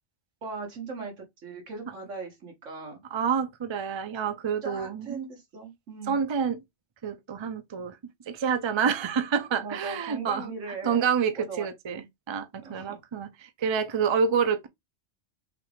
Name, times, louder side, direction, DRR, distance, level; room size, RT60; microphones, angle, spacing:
voice 1, 0.4-3.0 4.6-6.2 9.6-12.1 12.6-13.0, right 4 dB, 90° right, 1.7 m, -39 dB
voice 2, 3.1-5.3 6.1-6.6 7.0-8.0 8.3-10.5 10.8-14.7, right 6 dB, 40° right, 0.4 m, -28 dB
5.8 x 2.4 x 3.4 m
omnidirectional pair, 1.2 m